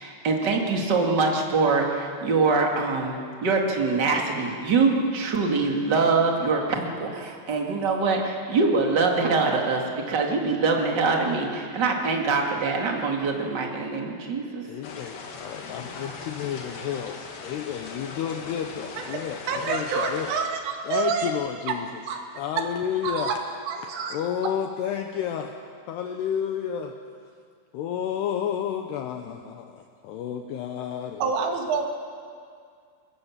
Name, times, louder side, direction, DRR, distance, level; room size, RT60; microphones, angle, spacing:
voice 1, 0.0-14.7, right 4 dB, 35° right, 1 dB, 1.8 m, -24 dB
voice 2, 14.6-20.3 20.8-22.0 22.3-23.3 23.8-25.5 25.9-27.0 27.7-31.3 31.6-31.9, left 9 dB, 75° left, 5 dB, 2.6 m, -31 dB
sound 1, 14.8-20.5, left 4 dB, 55° left, 3.2 m, -40 dB
voice 3, 19.0-21.3 22.1-22.2 23.0-23.4 23.7-24.2 31.2-31.9, right 5 dB, 85° right, 3 dB, 4.6 m, -28 dB
26.0 x 21.5 x 7.4 m, 2.2 s
omnidirectional pair, 5.6 m